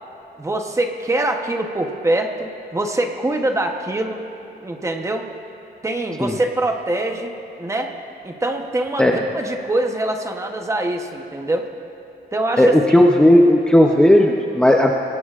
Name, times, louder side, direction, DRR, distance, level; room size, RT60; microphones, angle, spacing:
voice 1, 0.4-4.2 4.6-5.3 5.8-7.3 7.6-7.9 8.2-11.7 12.3-12.8, right 1 dB, 15° right, 3 dB, 0.9 m, -23 dB
voice 2, 12.6-14.9, left 1 dB, 5° left, 0 dB, 0.6 m, -14 dB
24.5 x 17.5 x 2.5 m, 2.9 s
wide cardioid pair, 170°, 17 cm